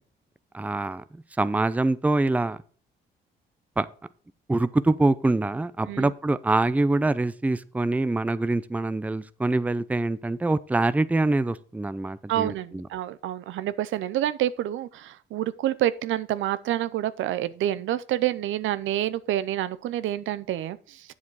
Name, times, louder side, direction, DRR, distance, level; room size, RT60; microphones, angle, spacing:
voice 1, 0.5-1.0 1.4-2.6 3.8-3.9 4.5-12.9, right 2 dB, 5° right, 0.5 m, -24 dB
voice 2, 12.3-21.1, right 13 dB, 75° right, 0.6 m, -28 dB
8.3 x 7.3 x 4.7 m
cardioid pair, 90°, 20 cm